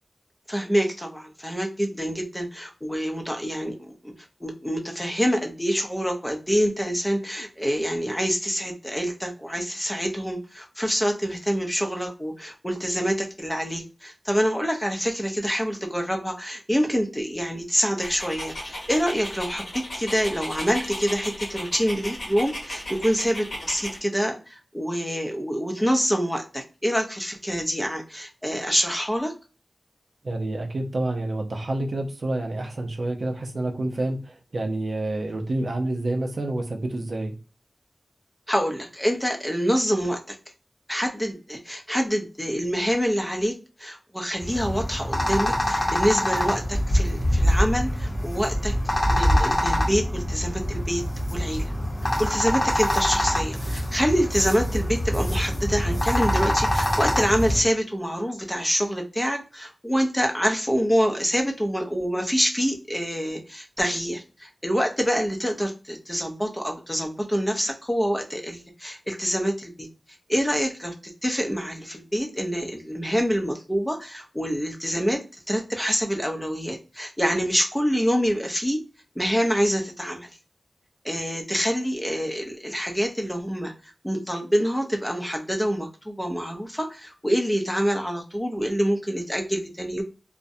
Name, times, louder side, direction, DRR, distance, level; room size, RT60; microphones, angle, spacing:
voice 1, 0.5-4.1 4.4-29.3 38.5-40.4 40.9-43.5 43.8-48.7 49.1-51.0 51.3-51.6 52.2-69.9 70.3-70.9 71.2-75.2 75.5-78.8 79.2-80.3 81.0-90.0, equal, 10° left, 2 dB, 0.5 m, -26 dB
Dog, 18.0-24.0, left 1 dB, 90° left, 1.2 m, -35 dB
voice 2, 30.2-37.3, right 2 dB, 70° right, 3 dB, 0.5 m, -28 dB
sound 1, 44.4-57.6, equal, 40° left, 0.8 m, -24 dB
2.5 x 2.1 x 2.6 m, 0.33 s
wide cardioid pair, 80°, 0 cm